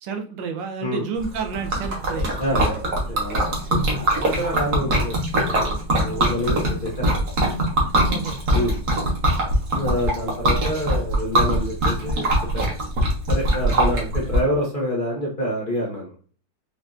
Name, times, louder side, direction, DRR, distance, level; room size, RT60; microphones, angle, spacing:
voice 1, 0.0-2.4 8.1-8.4 13.6-13.8, right 5 dB, 75° right, 4 dB, 1.4 m, -30 dB
Liquid, 1.2-14.4, right 1 dB, 60° right, 1.6 m, -22 dB
voice 2, 2.4-5.2 5.4-7.2 8.5-8.8 9.7-12.3 12.5-12.7 13.3-16.1, equal, 35° left, -4 dB, 0.9 m, -27 dB
5.4 x 2.7 x 2.4 m, 0.40 s
omnidirectional pair, 2.1 m